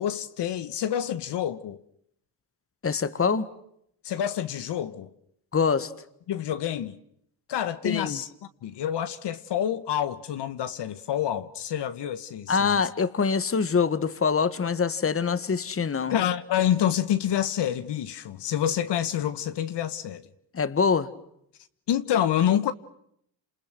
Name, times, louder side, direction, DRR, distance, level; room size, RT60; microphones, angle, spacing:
voice 1, 0.0-1.8 4.0-5.1 6.3-7.0 7.5-8.3 8.6-12.9 16.1-20.3 21.9-22.7, left 10 dB, 65° left, 1.5 m, -27 dB
voice 2, 2.8-3.5 5.5-5.9 7.8-8.2 12.5-16.2 20.5-21.1, left 5 dB, 30° left, 1.7 m, -24 dB
29.0 x 28.0 x 6.2 m
cardioid pair, 85°, 44 cm